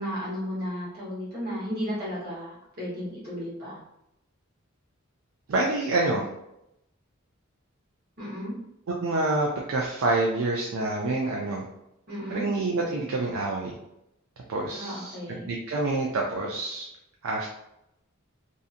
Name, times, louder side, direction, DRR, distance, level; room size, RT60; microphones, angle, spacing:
voice 1, 0.0-3.8 8.2-8.5 12.1-12.4 14.7-15.4, equal, 50° right, -8 dB, 1.1 m, -34 dB
voice 2, 5.5-6.3 9.0-11.6 12.3-13.7 14.5-16.9 17.2-17.5, right 2 dB, 75° right, -2 dB, 0.4 m, -27 dB
2.6 x 2.6 x 2.4 m, 0.83 s
head